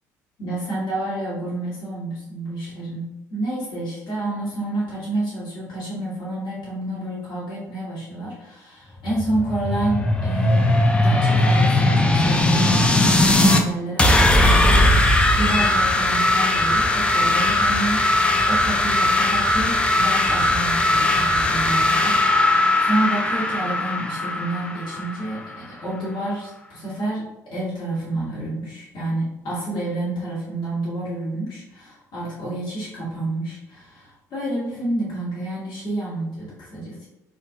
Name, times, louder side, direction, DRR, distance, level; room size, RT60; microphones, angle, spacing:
voice 1, 0.4-10.7 10.9-37.1, right 2 dB, 55° left, -8 dB, 1.4 m, -29 dB
sound 1, 9.0-13.6 14.0-25.6, left 1 dB, 10° left, 0.4 m, -19 dB
3.6 x 2.5 x 2.7 m, 0.92 s
figure-of-eight pair, 55°, 9 cm